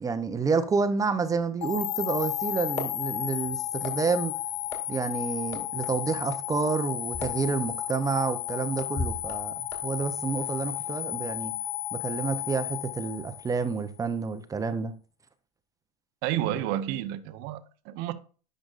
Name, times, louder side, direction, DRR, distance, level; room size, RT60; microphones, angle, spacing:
voice 1, 0.0-4.4 4.9-9.5 9.8-11.5 11.9-14.9, right 5 dB, 15° right, 0.6 m, -29 dB
sound 1, 1.6-13.8, left 12 dB, 65° left, 0.7 m, -33 dB
sound 2, 2.4-11.0, left 3 dB, 30° left, 2.3 m, -42 dB
voice 2, 16.2-18.1, right 12 dB, 55° right, 0.8 m, -30 dB
10.0 x 5.2 x 2.4 m
supercardioid pair, 120°, 20 cm